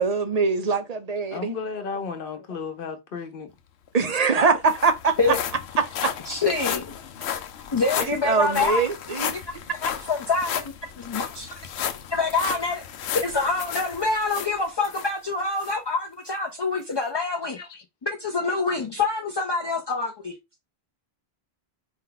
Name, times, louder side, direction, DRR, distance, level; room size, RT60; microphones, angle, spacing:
voice 1, 0.0-1.5 3.9-5.1 8.0-9.4, right 4 dB, 45° right, 0.6 m, -23 dB
voice 2, 1.3-3.5 11.7-11.8 17.6-17.8, left 5 dB, 60° left, 1.0 m, -34 dB
sound 1, 3.9-4.0 4.2-15.1 15.6-15.7 16.3-16.4, left 9 dB, 85° left, 0.9 m, -33 dB
voice 3, 6.3-6.9 7.7-8.8 9.8-11.6 12.1-12.8 13.1-17.6 18.0-20.3, left 3 dB, 35° left, 0.4 m, -26 dB
4.4 x 2.3 x 3.8 m
omnidirectional pair, 1.1 m